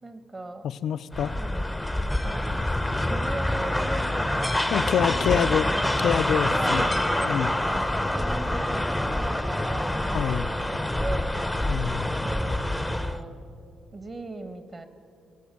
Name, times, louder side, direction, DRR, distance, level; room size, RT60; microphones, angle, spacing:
voice 1, 0.0-0.7 1.2-2.5 3.0-5.8 6.5-7.4 7.7-11.4 12.2-13.3 13.9-14.9, right 2 dB, 30° right, 11 dB, 1.3 m, -39 dB
voice 2, 0.6-1.4 4.7-5.8 6.0-6.8 7.2-7.5 10.1-10.5 11.7-12.1, left 9 dB, 70° left, 15 dB, 0.4 m, -26 dB
sound 1, 1.1-13.2, left 1 dB, 5° left, 0.7 m, -26 dB
18.0 x 8.3 x 8.4 m, 2.5 s
cardioid pair, 90°, 0 cm